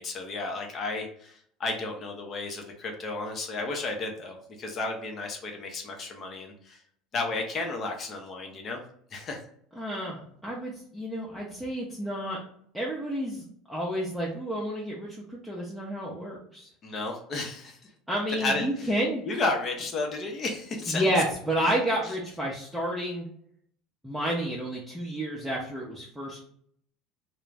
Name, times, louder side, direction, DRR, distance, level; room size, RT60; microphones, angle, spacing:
voice 1, 0.0-6.8 7.1-8.8 9.1-9.4 16.8-17.8 18.3-18.9 19.2-21.0 22.0-22.1, left 3 dB, 40° left, 3 dB, 0.7 m, -33 dB
voice 2, 9.7-12.4 12.7-16.7 18.1-19.2 20.9-23.3 24.0-26.4, equal, ahead, -5 dB, 0.7 m, -30 dB
2.3 x 2.1 x 3.3 m, 0.64 s
hypercardioid pair, 85°, 0 cm